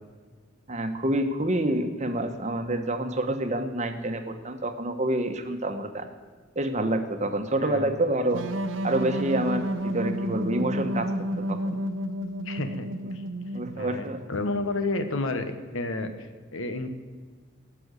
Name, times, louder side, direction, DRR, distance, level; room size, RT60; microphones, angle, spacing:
voice 1, 0.7-6.1 6.6-8.4 8.8-11.1 11.5-11.8 13.5-14.2, right 1 dB, 35° right, 6 dB, 1.1 m, -27 dB
voice 2, 7.5-7.9 12.4-12.9 13.1-13.2 13.7-16.9, left 2 dB, 80° left, 8 dB, 1.2 m, -31 dB
sound 1, 8.3-14.0, equal, 65° right, 0.8 m, -31 dB
18.5 x 6.2 x 8.1 m, 1.5 s
head